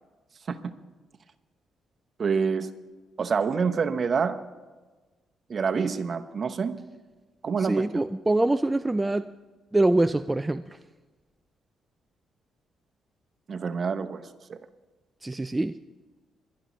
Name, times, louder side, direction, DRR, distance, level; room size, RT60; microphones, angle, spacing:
voice 1, 2.2-2.7 3.2-4.4 5.5-6.7 7.4-8.1 13.5-14.6, right 5 dB, 45° right, 8 dB, 0.9 m, -27 dB
voice 2, 7.6-9.3 9.7-10.8 15.2-15.8, right 2 dB, 15° right, 9 dB, 0.3 m, -24 dB
22.0 x 11.5 x 3.1 m, 1.3 s
cardioid pair, 90°, 0 cm